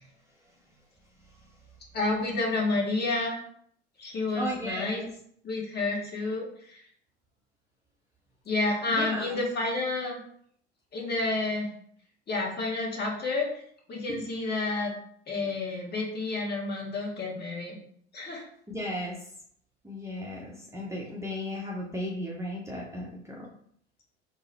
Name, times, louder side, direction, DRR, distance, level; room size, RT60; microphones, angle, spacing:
voice 1, 1.9-3.4 4.0-5.0 5.4-6.8 8.4-10.2 10.9-11.7 12.3-13.5 13.9-14.9 15.3-17.8 18.1-18.4, left 2 dB, 30° left, -1 dB, 1.3 m, -30 dB
voice 2, 4.3-5.1 8.9-9.4 14.1-14.3 18.7-19.2 19.8-23.5, equal, 10° right, -4 dB, 0.7 m, -35 dB
3.7 x 2.0 x 4.1 m, 0.63 s
hypercardioid pair, 75°, 32 cm